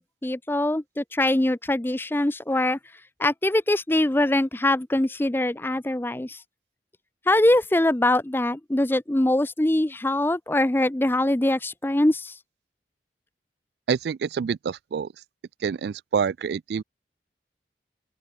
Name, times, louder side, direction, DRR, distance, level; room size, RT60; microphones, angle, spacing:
voice 1, 0.0-2.8 3.2-6.4 7.3-12.3, left 1 dB, 10° left, 0.5 m, -23 dB
voice 2, 13.9-15.1 15.6-16.8, right 6 dB, 65° right, 0.3 m, -27 dB
open air
head